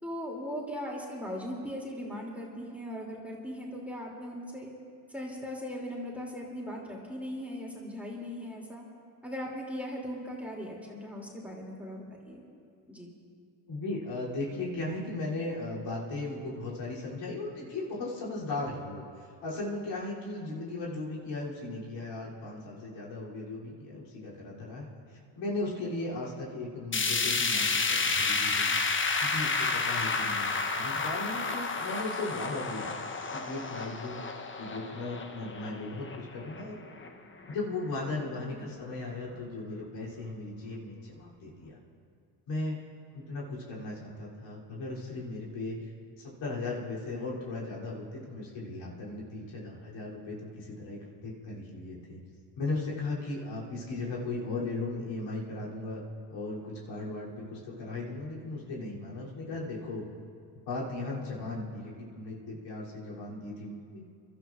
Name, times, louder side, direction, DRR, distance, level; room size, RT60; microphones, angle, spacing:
voice 1, 0.0-4.7 5.1-8.8 9.2-12.4 12.9-13.1 38.5-38.7, equal, 5° right, -3 dB, 3.0 m, -39 dB
voice 2, 13.7-28.8 29.2-36.8 37.5-41.8 42.5-42.8 43.1-45.9 46.2-52.2 52.6-56.0 56.3-60.1 60.7-64.0, left 2 dB, 65° left, -5 dB, 3.5 m, -37 dB
sound 1, 26.9-37.1 37.5-37.6 38.0-38.1 38.9-39.0, left 4 dB, 25° left, 1.0 m, -31 dB
29.5 x 12.5 x 2.6 m, 2.4 s
hypercardioid pair, 65°, 48 cm